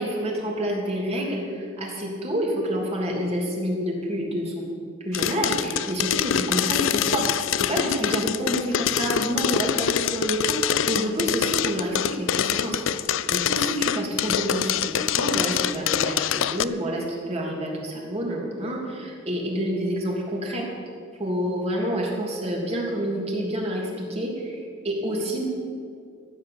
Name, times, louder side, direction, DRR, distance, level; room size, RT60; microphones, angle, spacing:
voice 1, 0.0-4.6 5.0-7.2 7.6-10.6 10.9-12.8 13.3-20.7 21.2-24.6 24.8-25.4, equal, 30° right, -2 dB, 3.0 m, -28 dB
sound 1, 5.1-16.6, left 9 dB, 70° left, 0.4 m, -25 dB
14.5 x 7.8 x 8.6 m, 2.3 s
head